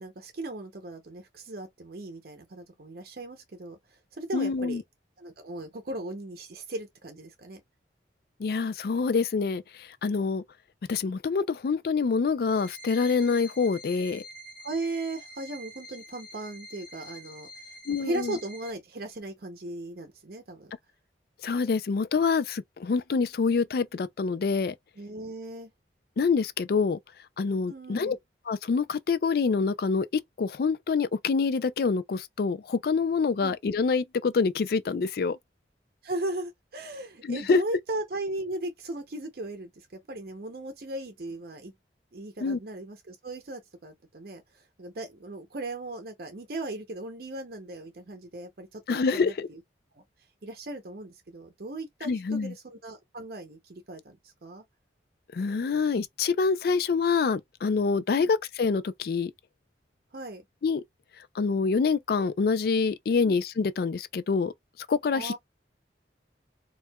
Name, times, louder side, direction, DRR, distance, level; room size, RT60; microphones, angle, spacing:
voice 1, 0.0-4.8 5.2-7.6 14.6-17.5 17.9-20.7 25.0-25.7 27.7-28.2 33.4-33.5 36.0-41.7 42.1-49.6 49.9-50.0 50.4-54.6 58.1-58.3 60.1-60.4 63.2-63.4 65.1-65.4, right 2 dB, 55° right, 0.6 m, -37 dB
voice 2, 4.3-4.8 8.4-10.4 10.9-14.2 17.9-18.4 21.4-24.7 26.2-27.0 27.4-28.2 28.5-35.4 37.2-37.6 42.4-42.6 48.9-49.5 52.0-52.5 55.3-59.3 60.6-60.8 61.4-64.5 64.9-65.3, left 4 dB, 55° left, 0.3 m, -26 dB
sound 1, 12.5-18.7, equal, 5° left, 0.9 m, -46 dB
4.4 x 2.4 x 2.2 m
head